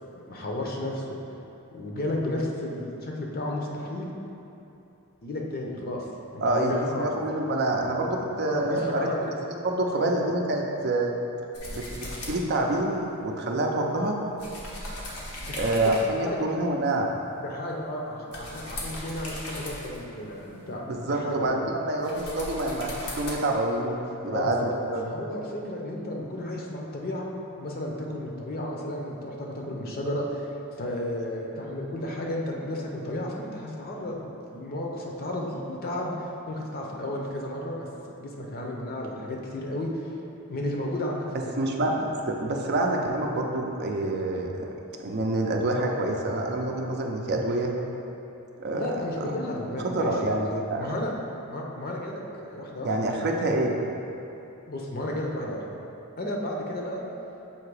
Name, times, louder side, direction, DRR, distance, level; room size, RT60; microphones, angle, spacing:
voice 1, 0.1-1.2 1.7-4.1 5.2-6.1 6.3-7.2 8.4-9.4 9.9-10.2 15.4-16.5 17.4-21.7 24.2-24.7 25.0-30.5 30.8-37.9 38.2-40.1 40.5-42.1 48.7-50.2 50.8-51.1 51.4-53.3 54.7-55.7 56.2-57.0, left 1 dB, 45° left, -1 dB, 0.7 m, -33 dB
voice 2, 6.4-9.1 9.6-11.1 11.7-14.2 15.6-17.1 20.9-24.0 24.2-25.0 41.6-44.7 45.0-47.7 48.6-48.8 49.2-49.3 49.8-50.9 52.8-53.7, right 2 dB, 45° right, 1 dB, 0.5 m, -27 dB
sound 1, 11.5-21.4 21.9-23.3, left 1 dB, 90° left, 1.1 m, -40 dB
7.1 x 2.8 x 4.7 m, 2.9 s
head